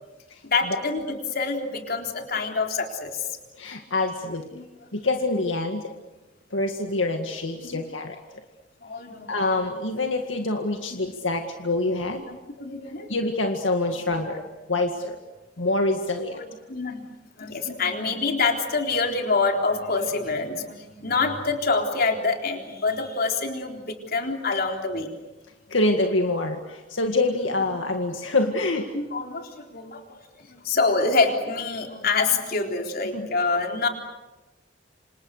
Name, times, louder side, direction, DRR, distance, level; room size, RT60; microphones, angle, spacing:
voice 1, 0.4-3.3 4.5-4.7 7.6-7.8 8.8-9.3 12.3-13.1 14.3-14.4 16.3-17.0 17.4-25.1 28.9-33.9, left 4 dB, 55° left, 3 dB, 3.8 m, -26 dB
voice 2, 3.6-4.5 4.9-5.9 6.5-8.2 9.3-12.2 13.1-14.4 14.7-15.2 15.6-16.4 25.7-28.8 33.1-33.3, left 2 dB, 80° left, 4 dB, 2.0 m, -25 dB
28.0 x 27.0 x 6.7 m, 1.1 s
head